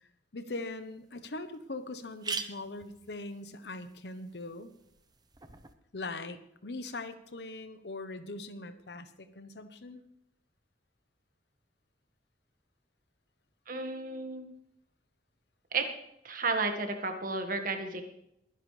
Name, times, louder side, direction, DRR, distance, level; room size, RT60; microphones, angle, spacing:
voice 1, 0.3-4.7 5.9-10.0, left 2 dB, 70° left, 11 dB, 1.0 m, -41 dB
sound 1, 0.7-0.8 1.2-1.3 1.5-1.6 2.0-5.7, right 4 dB, 25° right, 0.8 m, -43 dB
voice 2, 13.7-14.5 15.7-15.9 16.2-18.0, right 3 dB, 50° right, 5 dB, 1.7 m, -32 dB
22.0 x 10.5 x 3.3 m, 0.78 s
head